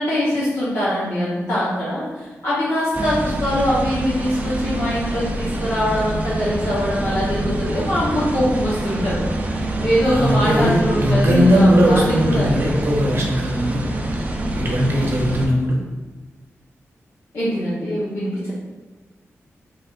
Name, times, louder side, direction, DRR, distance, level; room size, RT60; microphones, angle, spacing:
voice 1, 0.0-12.5 17.3-18.5, equal, 60° left, -10 dB, 0.9 m, -22 dB
sound 1, 2.9-15.5, right 1 dB, 30° right, 0.3 m, -26 dB
voice 2, 10.0-13.8 14.6-15.8, equal, 50° right, -2 dB, 0.8 m, -18 dB
3.9 x 3.3 x 2.4 m, 1.3 s
wide cardioid pair, 180°, 5 cm